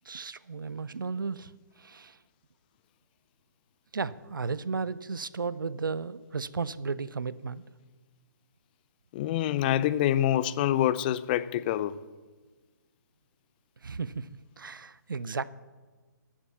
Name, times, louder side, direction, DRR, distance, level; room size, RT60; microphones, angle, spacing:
voice 1, 0.0-2.2 3.9-7.6 13.8-14.3 14.6-15.4, right 5 dB, 85° right, 0.5 m, -34 dB
voice 2, 9.1-11.9, left 12 dB, 30° left, 0.4 m, -26 dB
12.0 x 7.2 x 7.1 m
hypercardioid pair, 140°, 11 cm